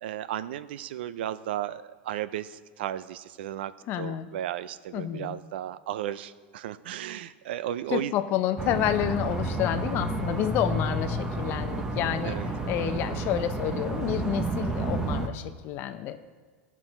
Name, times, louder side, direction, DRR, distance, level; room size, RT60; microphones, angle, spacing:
voice 1, 0.0-3.7 4.0-8.1 12.2-12.5, right 12 dB, 80° right, 15 dB, 0.5 m, -34 dB
voice 2, 3.9-4.3 4.9-5.4 7.9-16.2, left 11 dB, 40° left, 10 dB, 0.7 m, -29 dB
sound 1, 8.6-15.3, right 2 dB, 10° right, 0.9 m, -30 dB
17.5 x 6.1 x 4.4 m, 1.5 s
supercardioid pair, 145°, 6 cm